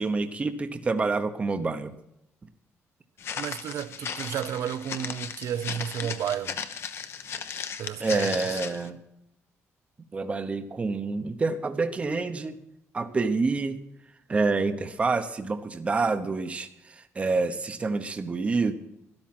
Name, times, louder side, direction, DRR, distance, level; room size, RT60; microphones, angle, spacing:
voice 1, 0.0-1.9 8.0-9.0 10.1-12.6 12.9-13.8 14.3-18.7, right 3 dB, 25° right, 0.9 m, -27 dB
Walk footsteps, 3.2-8.9, left 7 dB, 50° left, 1.0 m, -36 dB
voice 2, 3.3-6.6 7.8-8.4, right 10 dB, 70° right, 0.7 m, -32 dB
13.0 x 11.5 x 6.0 m
cardioid pair, 150°, 5 cm